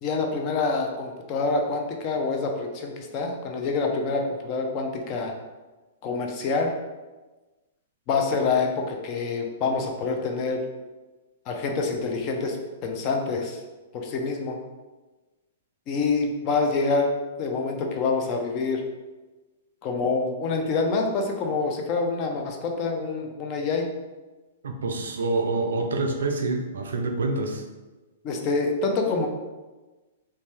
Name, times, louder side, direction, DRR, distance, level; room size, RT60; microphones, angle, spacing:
voice 1, 0.0-5.3 6.0-6.7 8.1-10.6 11.5-12.6 12.8-13.6 13.9-14.6 15.9-17.1 17.4-18.8 19.8-23.9 28.2-29.3, left 4 dB, 35° left, 3 dB, 0.5 m, -26 dB
voice 2, 24.6-27.6, right 3 dB, 85° right, 4 dB, 0.4 m, -27 dB
2.7 x 2.2 x 3.2 m, 1.2 s
hypercardioid pair, 130°, 0 cm